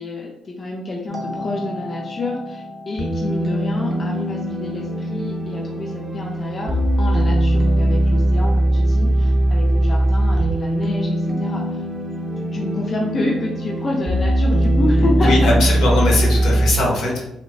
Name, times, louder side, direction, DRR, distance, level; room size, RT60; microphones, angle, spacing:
voice 1, 0.0-11.8 12.4-15.7, left 2 dB, 40° left, -1 dB, 0.4 m, -28 dB
sound 1, 1.1-16.7, right 1 dB, 15° right, 0.6 m, -20 dB
voice 2, 15.2-17.3, left 2 dB, 75° left, -2 dB, 0.8 m, -20 dB
2.9 x 2.1 x 2.3 m, 0.84 s
cardioid pair, 90°, 0 cm